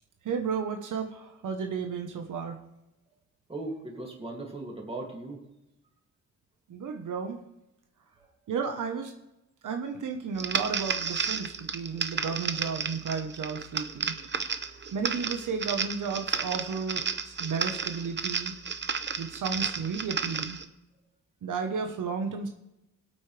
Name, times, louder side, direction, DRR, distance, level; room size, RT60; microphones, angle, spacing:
voice 1, 0.2-2.6 6.7-7.4 8.5-9.1 9.6-14.3 14.9-18.5 19.2-20.6 21.4-22.5, right 5 dB, 80° right, 4 dB, 1.2 m, -33 dB
voice 2, 3.5-5.4 8.2-8.3 18.7-18.9, right 2 dB, 20° right, 0 dB, 2.6 m, -38 dB
sound 1, 10.4-20.6, right 5 dB, 35° right, 0.8 m, -32 dB
22.0 x 8.8 x 3.4 m, 0.93 s
wide cardioid pair, 140°, 31 cm